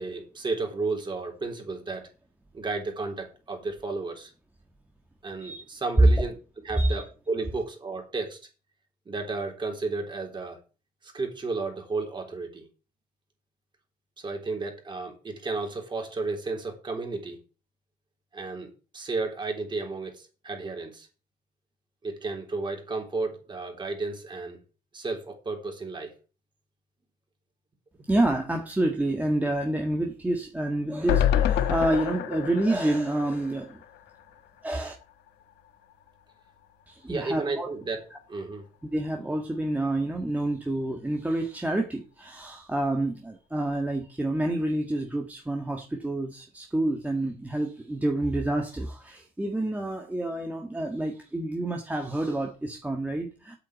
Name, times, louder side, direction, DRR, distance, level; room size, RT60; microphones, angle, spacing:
voice 1, 0.0-2.1 2.5-4.3 5.2-6.3 6.6-8.4 9.1-10.6 11.0-12.7 14.2-17.4 18.3-21.1 22.0-24.6 24.9-26.1 37.1-38.0 38.3-38.6, right 3 dB, 30° right, 3.8 m, -33 dB
voice 2, 28.1-33.8 34.6-34.9 36.9-37.7 38.9-53.6, right 1 dB, 10° right, 1.5 m, -28 dB
sound 1, 31.1-34.3 34.7-34.8 35.0-35.1, left 10 dB, 80° left, 1.3 m, -27 dB
8.4 x 6.5 x 8.4 m
cardioid pair, 110°, 17 cm